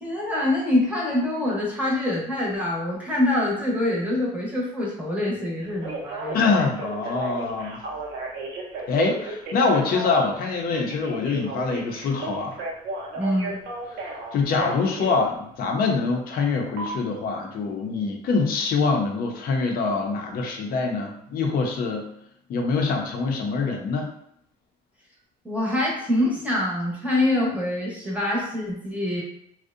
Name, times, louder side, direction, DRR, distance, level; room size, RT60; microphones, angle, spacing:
voice 1, 0.0-6.4 13.1-13.6 25.4-29.2, left 1 dB, 10° right, -4 dB, 0.7 m, -25 dB
Telephone, 5.6-15.2 16.8-16.9, right 2 dB, 80° right, 0.6 m, -34 dB
voice 2, 6.3-7.8 8.9-12.6 13.9-14.0 14.3-22.1 22.5-24.1, left 4 dB, 60° left, 2 dB, 0.5 m, -24 dB
2.6 x 2.1 x 2.4 m, 0.72 s
cardioid pair, 110°, 17 cm